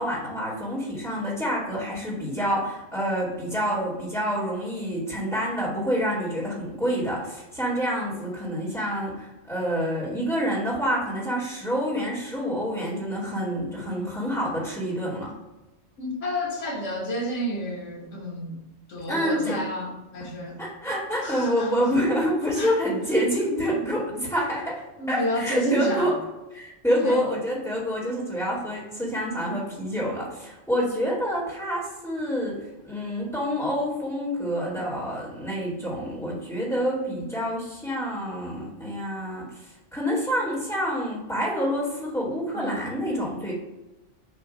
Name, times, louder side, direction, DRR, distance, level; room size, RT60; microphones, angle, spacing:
voice 1, 0.0-15.3 19.1-19.6 20.6-24.8 25.1-26.2 26.5-43.5, equal, 5° left, -6 dB, 1.6 m, -27 dB
voice 2, 16.0-18.6 18.9-20.6 21.2-21.7 22.6-22.7 25.0-26.1 27.0-27.2 42.5-42.8, equal, 90° left, -1 dB, 1.5 m, -30 dB
7.8 x 2.7 x 5.0 m, 1.0 s
omnidirectional pair, 1.2 m